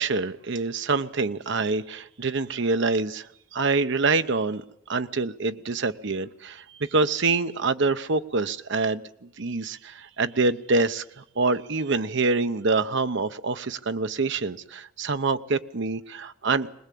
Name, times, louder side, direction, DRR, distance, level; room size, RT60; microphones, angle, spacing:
voice 1, 0.0-16.7, right 3 dB, 65° right, 11 dB, 0.9 m, -26 dB
21.5 x 20.0 x 8.4 m, 0.74 s
head